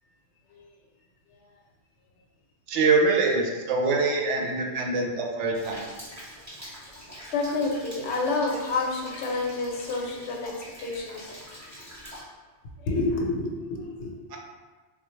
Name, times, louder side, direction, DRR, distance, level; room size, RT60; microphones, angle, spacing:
voice 1, 2.7-5.9 14.3-14.4, right 3 dB, 85° right, 1 dB, 0.9 m, -24 dB
Rain, 5.5-12.2, equal, 15° right, 0.8 m, -44 dB
voice 2, 7.3-10.5 10.8-11.3 12.8-14.1, left 3 dB, 75° left, 0 dB, 0.9 m, -28 dB
3.5 x 2.2 x 3.1 m, 1.3 s
omnidirectional pair, 1.2 m